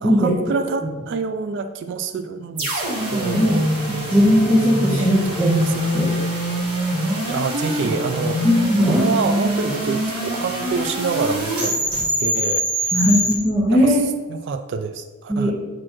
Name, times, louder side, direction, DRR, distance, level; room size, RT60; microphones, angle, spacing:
voice 1, 0.0-3.7 4.9-6.1 7.2-8.5 8.9-11.7 12.2-12.9 13.7-14.0 14.3-15.5, right 4 dB, 55° right, 8 dB, 0.3 m, -27 dB
sound 1, 2.6-13.3, equal, 85° right, 1.4 m, -24 dB
voice 2, 3.9-6.1 8.4-9.0 12.9-14.0 15.3-15.5, equal, 20° right, -11 dB, 1.5 m, -18 dB
7.5 x 4.2 x 3.0 m, 1.3 s
head